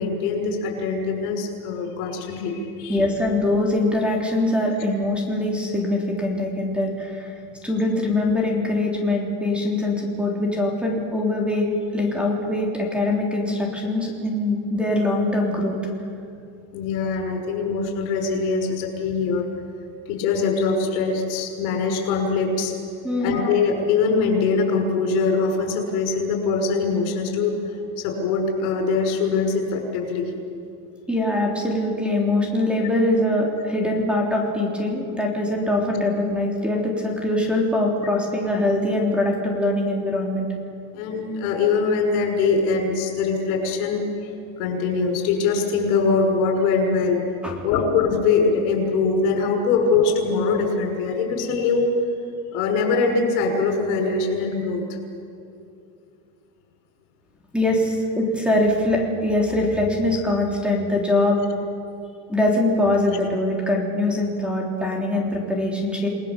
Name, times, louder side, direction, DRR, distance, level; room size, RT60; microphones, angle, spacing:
voice 1, 0.0-3.0 16.7-19.5 20.1-22.7 23.2-30.3 40.9-44.3 44.6-47.2 47.6-51.9 52.5-54.8, left 4 dB, 85° left, 2 dB, 6.4 m, -22 dB
voice 2, 2.9-7.3 7.6-15.8 23.0-23.4 31.1-40.5 47.4-47.6 57.5-61.4 62.3-66.1, left 1 dB, 5° right, -1 dB, 3.4 m, -23 dB
29.5 x 20.0 x 7.4 m, 2.6 s
cardioid pair, 165°, 42 cm